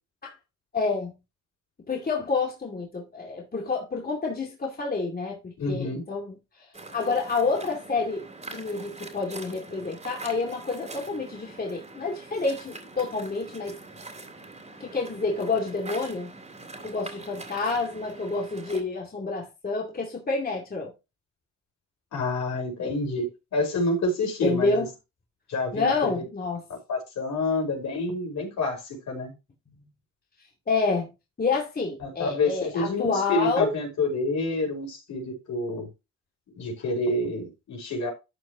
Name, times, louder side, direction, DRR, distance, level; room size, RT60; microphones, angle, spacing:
voice 1, 0.7-1.1 1.9-6.4 6.9-8.3 8.5-13.8 14.8-16.3 16.8-20.9 24.4-24.9 25.7-26.6 29.7-29.8 30.7-31.1 31.4-33.7, left 4 dB, 30° left, 2.4 m, -28 dB
voice 2, 5.6-6.1 22.1-24.9 25.5-26.1 26.9-29.3 32.0-35.9 36.5-38.1, left 2 dB, 65° left, 5.2 m, -28 dB
Waves surf, 6.7-18.8, right 2 dB, 20° right, 3.0 m, -43 dB
12.5 x 6.6 x 2.9 m
cardioid pair, 90°, 30 cm